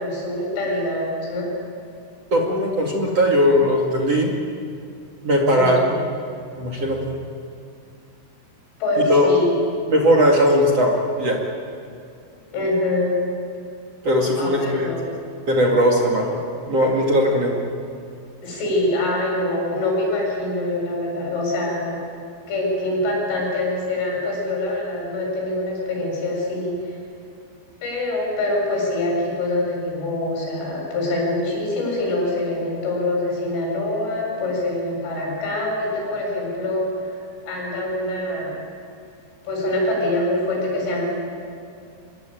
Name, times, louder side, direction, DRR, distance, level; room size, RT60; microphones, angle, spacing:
voice 1, 0.0-1.5 5.5-5.9 8.8-9.6 12.5-13.2 14.4-15.0 18.4-22.0 22.5-27.0 27.8-37.2 37.5-38.6 39.4-41.0, left 1 dB, 85° left, -1 dB, 10.0 m, -24 dB
voice 2, 2.3-4.4 5.2-6.0 6.6-7.1 9.1-9.3 9.9-11.4 14.0-14.9 15.5-16.4 16.7-17.6, equal, 40° right, 1 dB, 2.8 m, -19 dB
25.5 x 22.0 x 9.3 m, 2.5 s
omnidirectional pair, 5.4 m